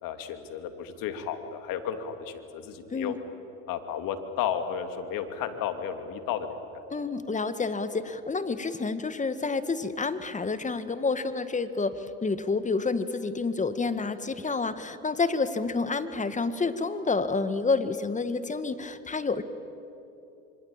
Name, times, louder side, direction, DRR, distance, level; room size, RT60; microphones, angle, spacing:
voice 1, 0.0-3.2 3.7-6.7 7.0-7.1, left 8 dB, 60° left, 8 dB, 2.9 m, -33 dB
voice 2, 6.9-19.4, left 4 dB, 20° left, 12 dB, 1.7 m, -29 dB
26.5 x 25.5 x 8.9 m, 2.9 s
supercardioid pair, 90°, 37 cm